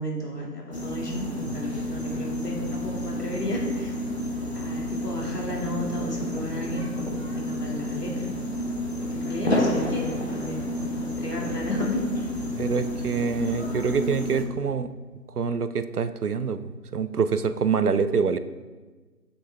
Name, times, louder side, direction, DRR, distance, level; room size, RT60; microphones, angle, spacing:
voice 1, 0.0-3.9 4.5-7.1 7.3-8.3 9.0-10.6 10.9-12.0, left 1 dB, 70° left, -2 dB, 2.4 m, -33 dB
sound 1, 0.7-14.4, left 1 dB, 40° left, 1.0 m, -30 dB
voice 2, 12.6-14.9 15.4-18.4, right 5 dB, 65° right, 12 dB, 0.6 m, -25 dB
7.9 x 6.1 x 3.4 m, 1.3 s
figure-of-eight pair, 170°, 49 cm